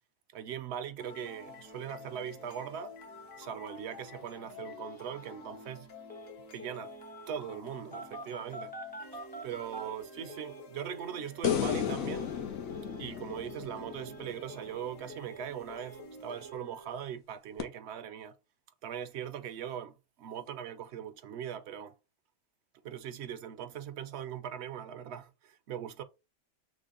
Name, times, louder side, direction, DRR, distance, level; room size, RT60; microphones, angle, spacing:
voice 1, 0.3-3.0 3.4-5.9 6.5-6.9 7.3-8.7 9.1-12.3 13.0-18.3 18.8-22.0 22.8-26.0, right 9 dB, 65° right, 0.7 m, -40 dB
sound 1, 1.0-17.0, left 2 dB, 65° left, 1.3 m, -50 dB
Telephone, 1.1-1.2 1.5-1.6 1.9-2.0 2.2-2.7 3.0-3.1 3.3-3.7 4.1-4.2 4.6-5.3 6.1-6.3 6.6-7.3 7.9-10.6 10.9-11.2 11.5-11.8 12.1-12.4 12.7-13.0 13.3-13.6 13.9-14.2 14.5-15.4 15.7-16.0 16.3-16.5, right 1 dB, 10° left, 0.5 m, -47 dB
sound 2, 11.4-14.8 17.6-17.7, left 9 dB, 85° left, 1.2 m, -34 dB
6.3 x 2.1 x 3.8 m
omnidirectional pair, 1.4 m